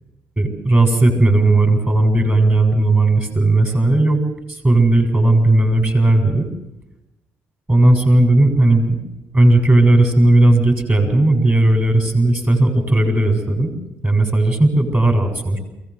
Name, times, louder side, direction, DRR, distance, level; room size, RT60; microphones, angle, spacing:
voice 1, 0.4-4.2 4.5-6.5 7.7-9.0 9.3-13.7 14.0-15.6, right 2 dB, 25° right, 5 dB, 7.5 m, -15 dB
23.0 x 17.5 x 8.0 m, 0.94 s
hypercardioid pair, 50°, 7 cm